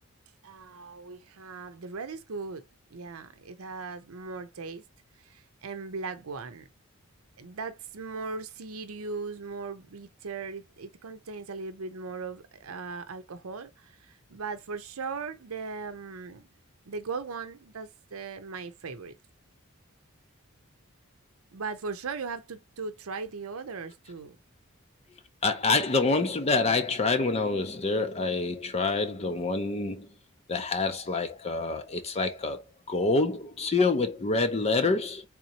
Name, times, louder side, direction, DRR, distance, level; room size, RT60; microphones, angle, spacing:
voice 1, 0.4-4.8 5.2-6.7 7.4-16.5 16.9-19.2 21.5-24.4, right 4 dB, 85° right, 0.7 m, -38 dB
voice 2, 25.4-30.1 30.5-35.2, left 3 dB, 30° left, 0.5 m, -27 dB
3.7 x 2.8 x 2.8 m
head